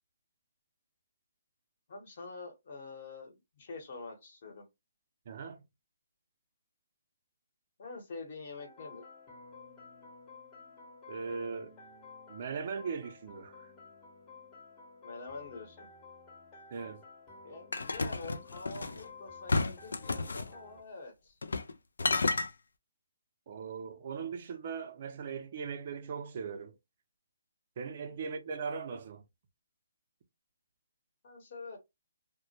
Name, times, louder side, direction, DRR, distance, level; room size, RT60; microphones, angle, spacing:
voice 1, 1.9-4.7 7.8-9.0 15.0-15.9 17.4-21.4 31.2-31.8, left 3 dB, 45° left, 1.0 m, -46 dB
voice 2, 5.3-5.6 11.1-11.8 12.3-13.7 16.7-17.0 23.5-26.8 27.8-29.2, right 5 dB, 45° right, 0.5 m, -39 dB
sound 1, 8.6-20.8, left 4 dB, 20° left, 0.8 m, -53 dB
sound 2, 17.7-19.0 19.5-20.5 21.4-21.7 22.0-22.5, left 3 dB, 85° left, 0.3 m, -31 dB
2.1 x 2.1 x 2.8 m
hypercardioid pair, 155°, 0 cm